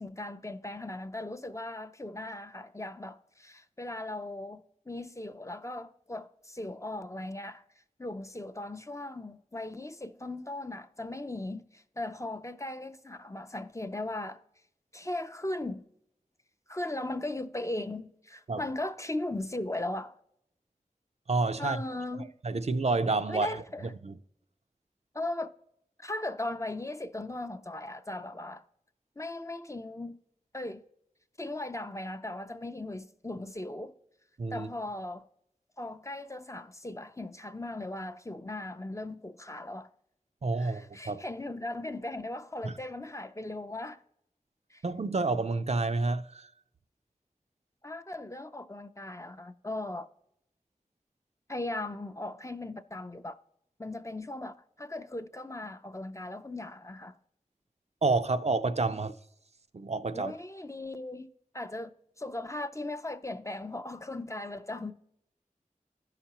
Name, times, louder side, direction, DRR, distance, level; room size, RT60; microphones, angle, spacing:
voice 1, 0.0-7.6 8.0-14.4 14.9-15.8 16.7-20.1 21.6-22.3 23.3-23.9 25.1-25.5 26.0-28.7 29.2-30.2 30.5-30.8 31.4-33.9 34.5-35.2 35.8-39.9 40.6-44.0 44.7-44.8 47.8-50.1 51.5-53.4 53.8-57.2 60.1-61.3 61.5-64.9, left 2 dB, 20° left, 0.4 m, -38 dB
voice 2, 21.3-21.8 22.2-23.5 24.0-24.2 34.4-34.7 40.4-41.2 42.6-42.7 44.8-46.5 58.0-59.2 59.7-60.3, right 3 dB, 50° right, 0.4 m, -29 dB
14.0 x 5.8 x 2.9 m
wide cardioid pair, 50°, 14 cm